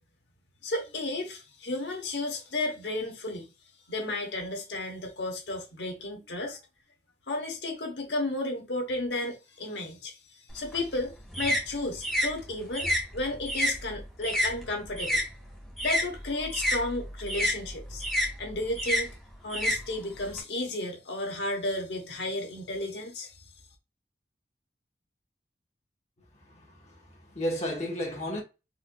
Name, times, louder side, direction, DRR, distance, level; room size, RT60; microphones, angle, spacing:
voice 1, 0.6-3.5 3.9-6.6 7.3-10.1 10.5-15.2 15.8-18.0 18.4-19.1 19.4-23.3, left 2 dB, 80° left, 0.9 m, -33 dB
sound 1, 10.5-15.3 15.6-20.4, equal, ahead, 1.2 m, -30 dB
voice 2, 26.3-28.4, equal, 40° left, 1.0 m, -34 dB
4.3 x 2.5 x 2.2 m
head